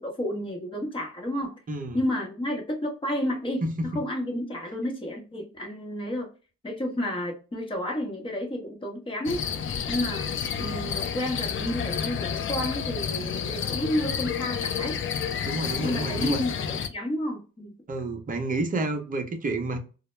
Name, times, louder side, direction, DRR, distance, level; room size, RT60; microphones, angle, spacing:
voice 1, 0.0-1.6 1.9-3.6 3.9-6.3 6.6-9.4 9.9-15.0 15.8-17.7, left 1 dB, 15° left, 0.8 m, -31 dB
voice 2, 1.7-2.0 3.6-4.0 15.4-16.4 17.9-19.8, right 2 dB, 30° right, 0.7 m, -29 dB
sound 1, 9.3-16.9, left 7 dB, 45° left, 0.4 m, -30 dB
2.1 x 2.1 x 3.0 m
cardioid pair, 90°, 30 cm